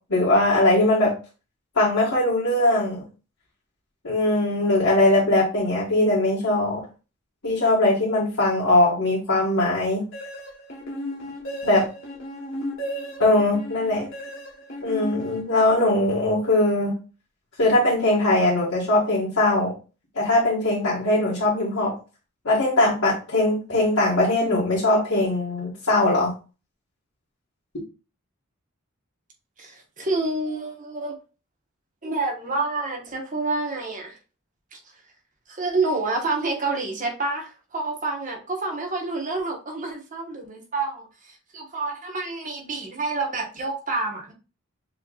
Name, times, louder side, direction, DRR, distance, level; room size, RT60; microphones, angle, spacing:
voice 1, 0.1-1.1 1.7-3.0 4.0-6.8 7.4-10.0 11.6-11.9 13.2-14.1 14.8-16.9 17.6-19.7 20.1-21.9 22.4-26.3, left 2 dB, 75° left, -8 dB, 1.7 m, -20 dB
sound 1, 10.1-15.9, equal, 60° left, 1.4 m, -35 dB
voice 2, 29.6-31.1 32.0-34.2 34.7-34.8 35.5-41.1 41.5-44.3, right 3 dB, 35° right, 1 dB, 1.2 m, -28 dB
6.6 x 3.2 x 2.4 m, 0.33 s
head